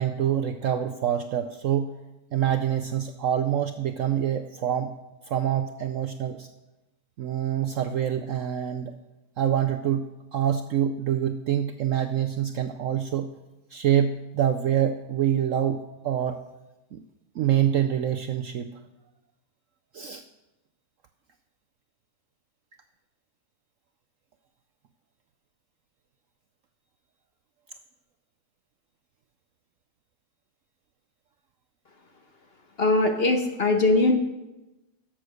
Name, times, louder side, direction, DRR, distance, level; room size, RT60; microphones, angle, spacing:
voice 1, 0.0-2.0 2.3-4.9 5.3-6.5 7.2-9.0 9.4-13.3 13.7-16.4 16.9-17.0 17.3-18.7 19.9-20.2, right 10 dB, 70° right, 7 dB, 0.8 m, -26 dB
voice 2, 32.8-34.1, left 2 dB, 45° left, 5 dB, 1.0 m, -21 dB
11.5 x 7.6 x 6.4 m, 1.0 s
omnidirectional pair, 1.8 m